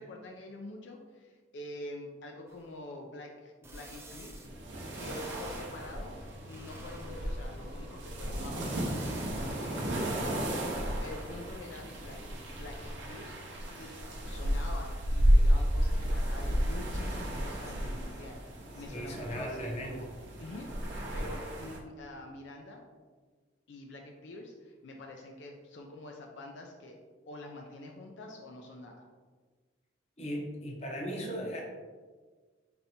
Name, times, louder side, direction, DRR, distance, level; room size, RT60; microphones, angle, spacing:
voice 1, 0.0-4.5 5.0-6.1 6.4-13.9 14.3-20.1 20.4-22.8 23.7-27.0 27.3-29.1, left 2 dB, 70° left, 1 dB, 0.4 m, -46 dB
sound 1, 2.5-2.6 3.6-4.5 4.8-5.7 6.3-7.4 8.7-9.3, right 2 dB, 15° right, 0.4 m, -48 dB
sound 2, 4.4-21.8, equal, 70° right, 0.7 m, -32 dB
sound 3, 6.1-14.5, equal, 40° right, 0.8 m, -53 dB
voice 2, 18.9-20.0 30.2-31.6, equal, 35° left, -1 dB, 0.7 m, -37 dB
4.1 x 3.3 x 2.8 m, 1.4 s
head